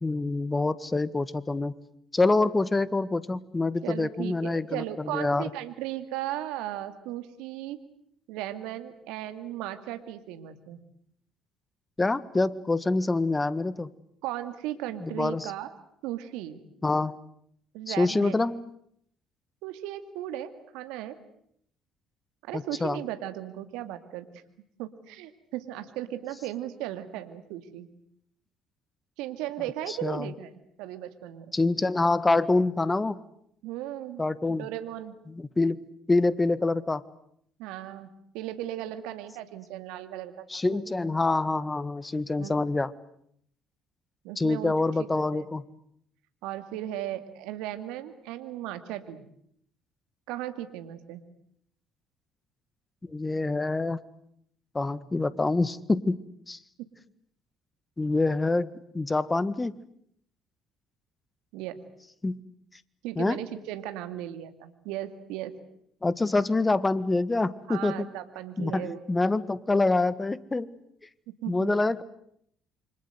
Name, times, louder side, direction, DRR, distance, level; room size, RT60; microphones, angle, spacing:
voice 1, 0.0-1.7 2.1-5.5 12.0-13.9 15.0-15.5 16.8-17.2 17.9-18.6 22.5-23.0 29.9-30.3 31.5-33.2 34.2-34.7 35.3-37.0 40.5-42.9 44.4-45.6 53.1-54.0 54.7-56.2 56.5-56.6 58.0-58.7 58.9-59.8 62.2-62.4 63.1-63.4 66.0-68.1 68.6-70.7 71.5-72.0, left 2 dB, 20° left, 17 dB, 1.7 m, -26 dB
voice 2, 3.8-7.8 8.3-10.8 14.2-15.7 16.0-16.6 17.7-18.3 19.6-21.2 22.4-24.3 24.8-27.9 29.2-30.5 30.8-31.5 33.6-34.2 34.5-35.2 37.6-40.8 42.4-42.6 44.2-44.7 45.0-45.1 45.3-45.5 46.4-49.3 50.3-51.2 56.8-56.9 61.5-61.8 63.0-65.5 67.7-69.0 71.4-71.7, right 13 dB, 75° right, 10 dB, 2.3 m, -36 dB
28.5 x 25.0 x 8.1 m, 0.70 s
hypercardioid pair, 55°, 0 cm